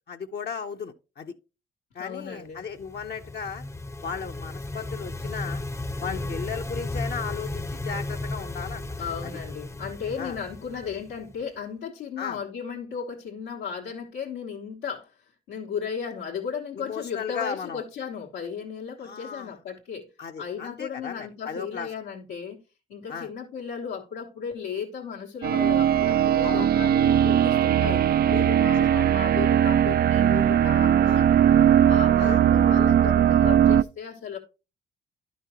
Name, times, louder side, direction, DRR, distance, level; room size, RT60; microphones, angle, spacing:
voice 1, 0.1-1.3 1.9-3.6 4.0-5.6 6.0-8.8 9.2-9.3 10.2-10.4 12.2-12.4 16.8-17.8 19.0-19.6 20.2-21.9 23.1-23.3 26.4-26.7 28.7-28.9 31.0-31.3 32.2-32.4, left 6 dB, 55° left, 0.9 m, -35 dB
voice 2, 2.0-2.6 6.0-6.4 9.0-15.1 15.5-20.1 20.4-22.6 22.9-28.0 28.3-31.4 31.9-34.4, left 7 dB, 90° left, 1.5 m, -35 dB
sound 1, 2.7-11.4, left 2 dB, 15° left, 0.6 m, -34 dB
sound 2, 25.4-33.8, right 10 dB, 50° right, 0.4 m, -19 dB
11.0 x 5.5 x 3.0 m
hypercardioid pair, 45°, 20 cm